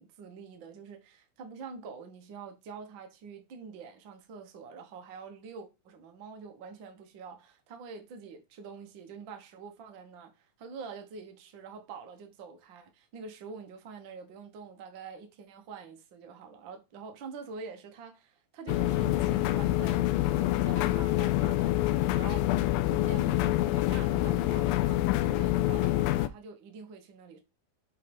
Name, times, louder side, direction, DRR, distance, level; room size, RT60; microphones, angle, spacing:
voice 1, 0.0-27.4, right 5 dB, 80° right, 1.0 m, -46 dB
sound 1, 18.7-26.3, left 15 dB, 90° left, 2.4 m, -26 dB
7.4 x 3.3 x 5.3 m
omnidirectional pair, 4.0 m